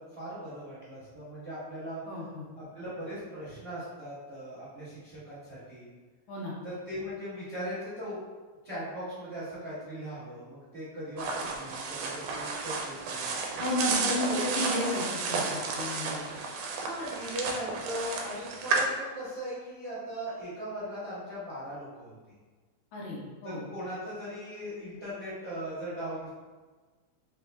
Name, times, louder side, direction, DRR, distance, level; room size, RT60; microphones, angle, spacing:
voice 1, 0.0-2.0 2.6-5.9 6.6-8.2 8.6-13.3 14.2-14.4 16.6-22.1 23.4-26.3, equal, 35° right, -11 dB, 1.0 m, -39 dB
voice 2, 2.1-2.4 6.3-6.5 13.6-16.2 22.9-23.6, left 1 dB, 75° left, -6 dB, 2.4 m, -33 dB
sound 1, 11.2-18.9, right 4 dB, 85° right, 2.0 m, -32 dB
5.3 x 2.0 x 3.4 m, 1.4 s
omnidirectional pair, 3.5 m